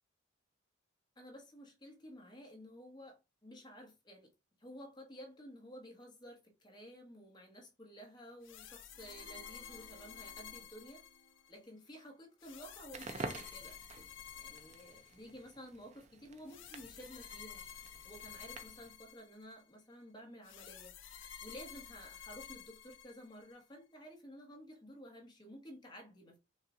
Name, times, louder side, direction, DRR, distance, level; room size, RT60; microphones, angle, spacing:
voice 1, 1.2-4.3 4.6-11.0 11.5-13.8 14.4-17.6 18.0-20.9 21.4-26.4, equal, 20° left, 1.2 m, -53 dB
sound 1, 8.4-11.6 12.4-15.5 16.5-19.6 20.4-23.5, left 8 dB, 65° left, 0.6 m, -52 dB
sound 2, 8.9-12.1, equal, 45° left, 1.9 m, -64 dB
Crackle, 12.8-19.0, right 3 dB, 35° right, 0.5 m, -49 dB
5.4 x 2.4 x 3.7 m
head